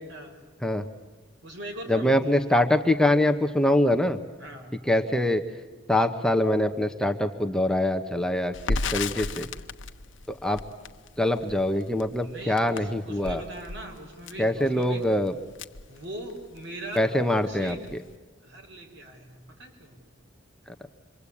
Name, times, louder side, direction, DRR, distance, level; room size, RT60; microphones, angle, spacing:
voice 1, 0.1-0.4 1.4-2.4 4.4-4.8 9.1-9.2 12.2-15.0 15.9-17.8 18.4-20.0, right 1 dB, 65° right, 3 dB, 5.2 m, -41 dB
voice 2, 1.9-4.2 4.9-5.4 5.9-9.5 10.3-10.6 11.2-13.4 14.4-15.3 17.0-17.8, left 1 dB, 5° left, 6 dB, 0.9 m, -24 dB
Crackle, 8.5-16.6 16.9-17.1 17.4-18.1, left 3 dB, 70° left, 0.9 m, -35 dB
26.5 x 24.0 x 8.5 m, 1.3 s
head